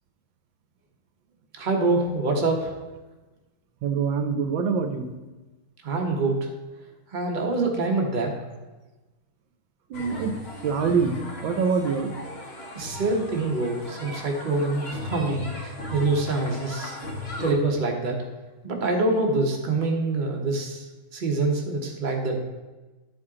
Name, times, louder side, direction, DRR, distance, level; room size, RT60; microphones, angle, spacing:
voice 1, 1.6-2.7 5.8-6.5 7.1-8.3 12.7-17.0 17.4-18.2 18.6-20.9 21.1-22.3, right 3 dB, 35° right, 1 dB, 0.8 m, -25 dB
voice 2, 3.8-5.1 9.9-10.4 10.6-12.1, right 5 dB, 75° right, 7 dB, 1.3 m, -25 dB
sound 1, 9.9-17.5, left 2 dB, 45° left, 0.8 m, -37 dB
11.5 x 4.4 x 3.7 m, 1.2 s
omnidirectional pair, 2.2 m